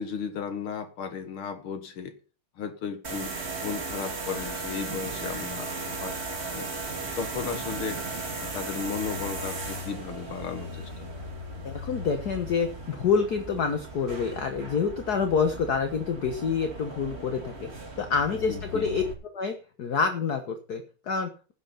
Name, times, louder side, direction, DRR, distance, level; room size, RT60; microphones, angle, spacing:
voice 1, 0.0-2.1 2.6-6.2 6.4-6.7 7.2-8.0 8.4-11.1 18.5-18.9, left 6 dB, 80° left, 9 dB, 2.3 m, -35 dB
sound 1, 3.0-19.1, right 2 dB, 30° right, 2.6 m, -36 dB
voice 2, 11.6-17.7 18.0-19.0 19.3-21.5, left 5 dB, 50° left, 7 dB, 1.6 m, -27 dB
16.0 x 9.2 x 4.3 m, 0.36 s
omnidirectional pair, 2.3 m